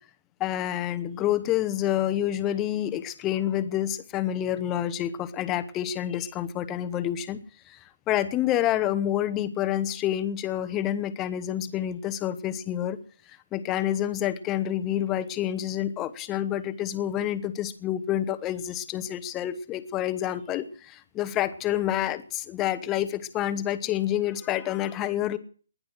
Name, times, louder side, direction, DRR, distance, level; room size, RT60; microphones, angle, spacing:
voice 1, 0.4-7.4 7.7-7.8 8.1-13.0 13.5-25.4, left 12 dB, 10° left, 11 dB, 0.9 m, -28 dB
20.0 x 11.5 x 6.3 m, 0.42 s
hypercardioid pair, 170°, 0 cm